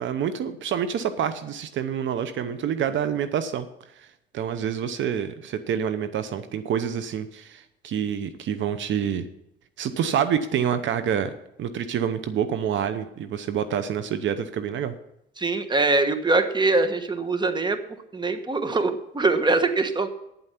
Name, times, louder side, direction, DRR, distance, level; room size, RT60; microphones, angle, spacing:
voice 1, 0.0-3.7 4.0-4.1 4.3-9.3 9.8-11.3 11.6-14.9, right 8 dB, 70° right, 11 dB, 0.8 m, -27 dB
voice 2, 15.4-17.8 18.1-20.1, right 3 dB, 20° right, 9 dB, 1.2 m, -23 dB
9.7 x 7.9 x 5.8 m, 0.82 s
cardioid pair, 90°, 20 cm